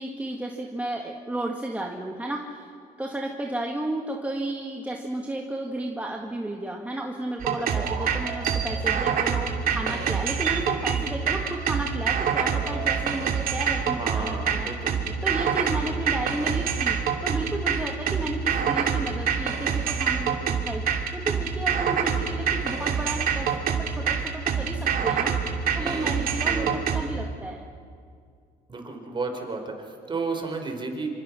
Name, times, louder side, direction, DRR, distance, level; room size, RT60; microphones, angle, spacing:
voice 1, 0.0-2.7 3.0-14.7 15.2-20.9 21.1-25.4 25.7-27.7, right 1 dB, 10° right, 0 dB, 1.9 m, -33 dB
sound 1, 7.4-27.0, right 7 dB, 60° right, 2.8 m, -26 dB
voice 2, 9.9-10.3 14.0-15.1 25.8-26.7 28.7-31.1, right 3 dB, 30° right, 4 dB, 4.7 m, -33 dB
26.5 x 26.0 x 6.3 m, 2.2 s
cardioid pair, 110°, 17 cm